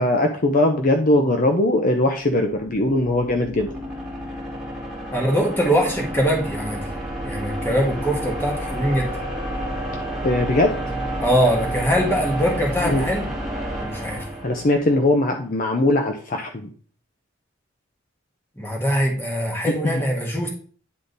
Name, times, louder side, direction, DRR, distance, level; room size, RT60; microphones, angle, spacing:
voice 1, 0.0-3.7 10.2-10.8 12.8-13.0 14.4-16.7 19.8-20.0, left 1 dB, 45° left, 4 dB, 0.7 m, -20 dB
sound 1, 2.1-15.1, equal, 5° right, 2.2 m, -30 dB
voice 2, 5.1-6.9 7.2-9.1 11.2-13.3 13.8-14.3 18.6-20.5, equal, 10° left, -1 dB, 1.7 m, -22 dB
9.6 x 3.8 x 4.0 m, 0.44 s
head